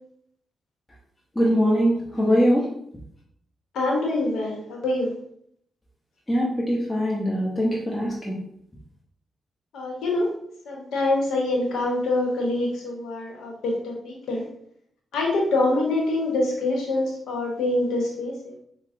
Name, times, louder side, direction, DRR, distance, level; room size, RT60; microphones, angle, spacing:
voice 1, 1.4-2.6 6.3-8.4, equal, 15° left, -4 dB, 0.8 m, -22 dB
voice 2, 3.7-5.1 9.7-10.3 10.7-14.4 15.1-18.5, left 2 dB, 80° left, 0 dB, 0.8 m, -25 dB
4.8 x 2.0 x 2.5 m, 0.70 s
supercardioid pair, 50°, 0 cm